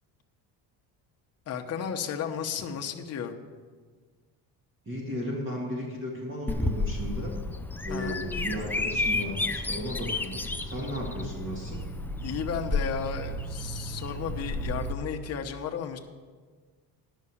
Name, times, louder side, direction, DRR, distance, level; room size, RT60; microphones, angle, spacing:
voice 1, 1.5-3.3 7.9-8.2 12.2-16.0, left 7 dB, 40° left, 3 dB, 1.0 m, -34 dB
voice 2, 4.9-7.4 7.8-11.8, equal, 30° right, -3 dB, 2.0 m, -35 dB
Bird vocalization bird call bird song, 6.5-14.9, left 2 dB, 5° left, 0.3 m, -32 dB
11.0 x 6.3 x 7.1 m, 1.5 s
cardioid pair, 125°, 39 cm